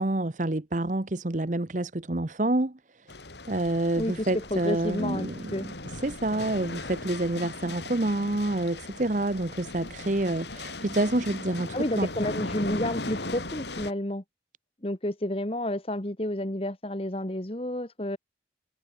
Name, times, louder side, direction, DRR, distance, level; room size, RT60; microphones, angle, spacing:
voice 1, 0.0-3.1 3.5-5.7 6.0-12.1, right 2 dB, 45° right, 1.0 m, -28 dB
sound 1, 3.1-13.9, left 2 dB, 75° left, 4.8 m, -38 dB
voice 2, 4.0-5.7 11.7-14.2 14.8-18.2, left 1 dB, 30° left, 1.7 m, -30 dB
head